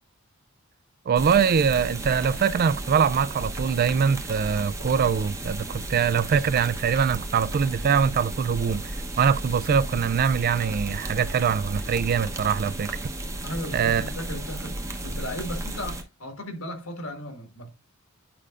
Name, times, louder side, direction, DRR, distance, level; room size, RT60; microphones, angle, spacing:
voice 1, 1.1-8.9 9.2-12.9 13.7-14.0, right 6 dB, 45° right, 0.3 m, -23 dB
sound 1, 1.2-16.0, right 1 dB, 15° right, 0.8 m, -34 dB
voice 2, 13.4-17.7, left 1 dB, 80° left, 1.7 m, -36 dB
8.6 x 4.9 x 2.4 m
head